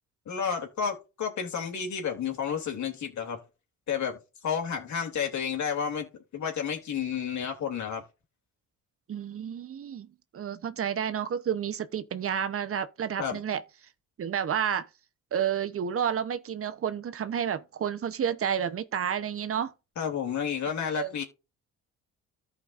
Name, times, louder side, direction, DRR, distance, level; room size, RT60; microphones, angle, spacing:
voice 1, 0.3-3.4 3.9-4.2 4.4-8.0 13.2-13.4 20.0-21.2, left 7 dB, 70° left, 2.9 m, -31 dB
voice 2, 9.1-10.1 10.3-13.6 14.2-14.9 15.3-19.7 20.8-21.1, right 8 dB, 50° right, 0.9 m, -30 dB
14.5 x 5.2 x 2.6 m
cardioid pair, 90°, 30 cm